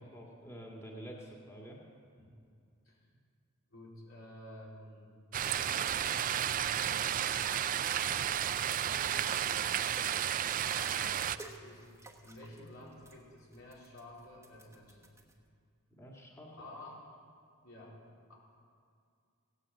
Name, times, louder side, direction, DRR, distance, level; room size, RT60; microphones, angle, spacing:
voice 1, 0.0-1.8 16.0-16.7, right 1 dB, 15° left, -2 dB, 1.9 m, -48 dB
voice 2, 3.7-5.1 5.5-6.2 6.4-7.4 8.6-10.3 10.6-11.8 12.2-15.1 16.5-17.0 17.6-18.0 18.3-18.4, left 1 dB, 80° left, -4 dB, 4.0 m, -52 dB
sound 1, 5.3-11.4, right 10 dB, 40° right, 0.4 m, -32 dB
sound 2, 8.4-15.3, right 2 dB, 15° right, 1.3 m, -55 dB
16.5 x 9.8 x 7.7 m, 2.3 s
head